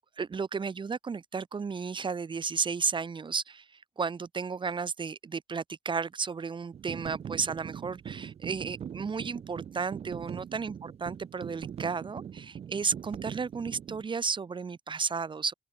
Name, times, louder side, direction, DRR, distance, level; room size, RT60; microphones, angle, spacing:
voice 1, 0.2-15.5, right 5 dB, 45° right, 3.7 m, -33 dB
sound 1, 6.7-14.1, right 8 dB, 60° right, 2.3 m, -42 dB
supercardioid pair, 55°, 12 cm